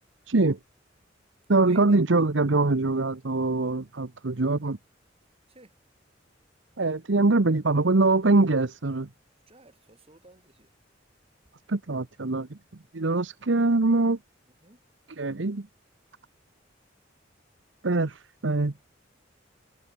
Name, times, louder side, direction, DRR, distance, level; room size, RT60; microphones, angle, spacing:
voice 1, 0.3-0.6 1.5-4.8 6.8-9.1 11.7-12.6 12.9-14.2 15.2-15.7 17.8-18.7, right 3 dB, 80° right, 1.0 m, -23 dB
voice 2, 1.7-2.1 5.5-5.7 9.5-10.7 14.6-14.8, right 2 dB, 30° right, 7.5 m, -54 dB
head